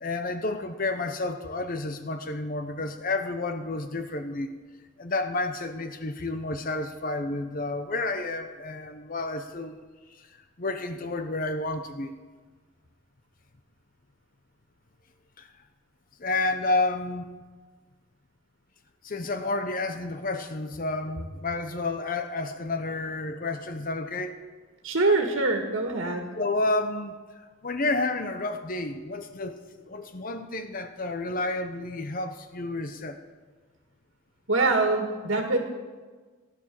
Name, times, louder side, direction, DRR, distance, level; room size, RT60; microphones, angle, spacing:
voice 1, 0.0-4.5 5.0-9.8 10.1-12.1 15.4-15.5 16.2-17.3 19.0-24.4 26.4-27.2 27.6-29.6 29.9-33.2, left 2 dB, 40° left, 8 dB, 0.8 m, -30 dB
voice 2, 24.8-26.3 34.5-35.6, right 3 dB, 70° right, 3 dB, 1.8 m, -24 dB
16.5 x 11.0 x 7.6 m, 1.4 s
head